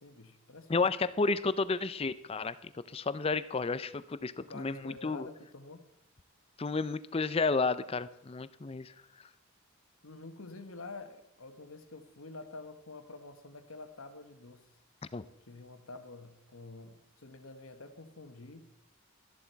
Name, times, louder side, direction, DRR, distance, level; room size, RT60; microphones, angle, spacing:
voice 1, 0.0-0.9 4.4-5.8 10.0-14.7 15.5-18.7, left 3 dB, 65° left, 8 dB, 1.2 m, -48 dB
voice 2, 0.7-5.3 6.6-8.9 15.1-15.2, left 4 dB, 25° left, 15 dB, 0.4 m, -32 dB
13.0 x 11.0 x 4.6 m, 0.80 s
head